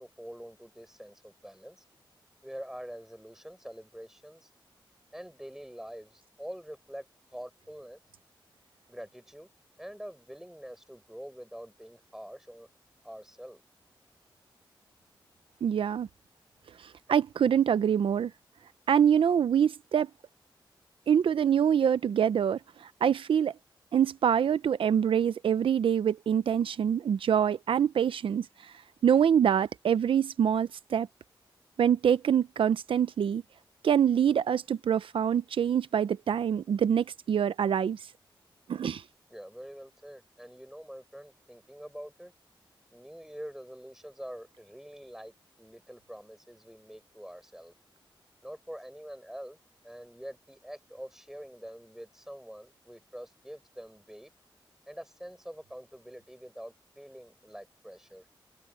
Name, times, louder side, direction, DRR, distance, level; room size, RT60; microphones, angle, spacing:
voice 1, 0.0-1.8 2.4-4.5 5.1-7.1 7.3-8.0 8.9-9.5 9.8-12.7 13.0-13.6 39.3-42.3 42.9-45.3 45.6-47.7 48.4-49.6 49.8-54.3 54.9-58.2, equal, 5° right, 6.5 m, -45 dB
voice 2, 15.6-16.1 16.8-18.3 18.9-20.1 21.1-23.5 23.9-28.7 29.0-31.1 31.8-33.4 33.8-38.0 38.7-39.0, right 8 dB, 85° right, 0.5 m, -25 dB
cardioid pair, 55°, 9 cm